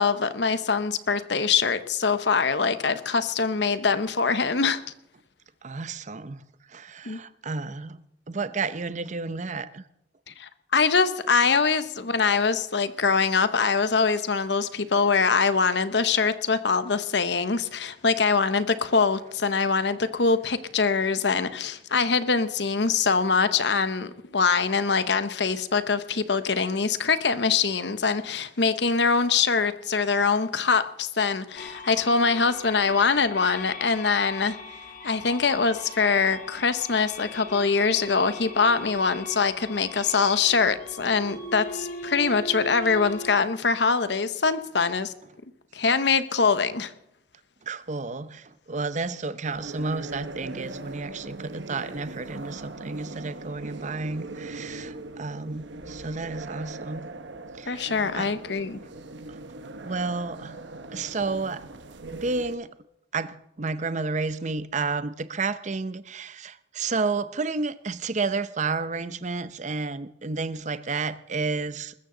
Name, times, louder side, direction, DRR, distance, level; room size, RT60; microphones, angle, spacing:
voice 1, 0.0-4.8 7.1-7.2 10.3-34.6 35.0-45.1 45.7-46.9 57.7-58.8, left 5 dB, 70° left, 0.9 m, -23 dB
voice 2, 5.6-6.4 6.7-8.0 8.3-9.8 47.7-57.1 57.6-58.3 59.8-60.6 60.9-61.7 62.1-62.7 63.1-71.9, right 4 dB, 40° right, 0.7 m, -31 dB
sound 1, 31.6-43.4, left 1 dB, 45° left, 1.7 m, -40 dB
sound 2, 49.5-62.6, right 2 dB, 80° right, 1.0 m, -40 dB
21.0 x 14.0 x 3.9 m
head